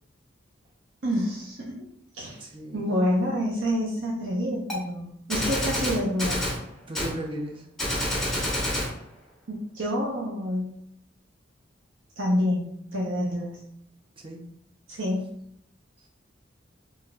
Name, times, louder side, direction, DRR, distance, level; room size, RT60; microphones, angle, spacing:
voice 1, 1.0-1.8 2.1-2.4 2.7-6.4 9.5-10.7 12.2-13.6 14.9-15.3, equal, 85° right, -4 dB, 0.7 m, -27 dB
voice 2, 2.4-2.8 6.8-7.7 14.2-14.5 16.0-16.1, right 1 dB, 30° right, 1 dB, 0.5 m, -36 dB
Gunshot gunfire, 4.7-4.8 5.3-6.6 6.9-7.1 7.8-8.9, left 1 dB, 5° left, 1.0 m, -27 dB
3.9 x 2.6 x 2.2 m, 0.69 s
head